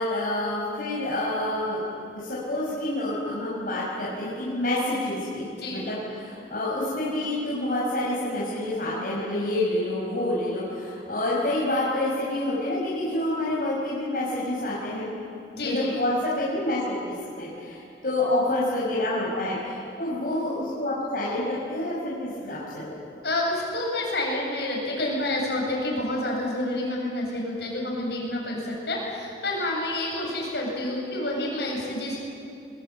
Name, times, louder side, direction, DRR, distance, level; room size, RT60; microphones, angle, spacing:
voice 1, 0.0-1.8 2.1-15.1 15.6-23.2, left 1 dB, 55° left, -7 dB, 5.6 m, -28 dB
voice 2, 15.5-15.9 23.2-32.2, left 1 dB, 70° left, -2 dB, 7.9 m, -28 dB
24.0 x 22.0 x 9.1 m, 2.6 s
head